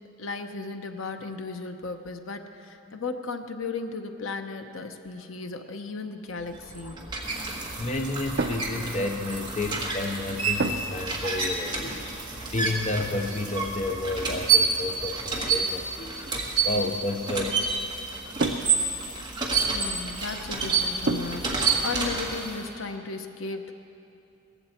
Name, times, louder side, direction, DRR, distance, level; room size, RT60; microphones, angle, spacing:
voice 1, 0.2-7.1 16.6-16.7 19.7-23.7, left 4 dB, 65° left, 6 dB, 0.9 m, -35 dB
sound 1, 6.4-22.7, right 5 dB, 20° right, 1.5 m, -29 dB
voice 2, 7.8-17.6, left 2 dB, 30° left, 4 dB, 0.6 m, -31 dB
sound 2, 8.4-9.6 10.6-11.1 11.4-11.7 12.6-13.8 14.7-14.8 15.3-16.0 17.9-19.1 21.0-21.6, right 3 dB, 55° right, 0.7 m, -32 dB
18.5 x 15.0 x 4.4 m, 2.7 s
head